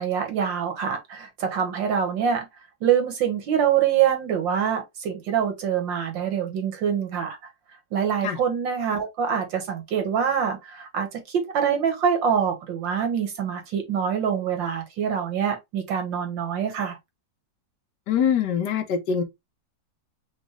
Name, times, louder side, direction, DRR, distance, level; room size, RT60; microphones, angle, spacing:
voice 1, 0.0-2.5 2.8-7.4 7.9-17.0, right 8 dB, 85° right, 2.0 m, -25 dB
voice 2, 18.1-19.2, left 7 dB, 70° left, 1.4 m, -23 dB
5.1 x 2.4 x 3.3 m
omnidirectional pair, 2.0 m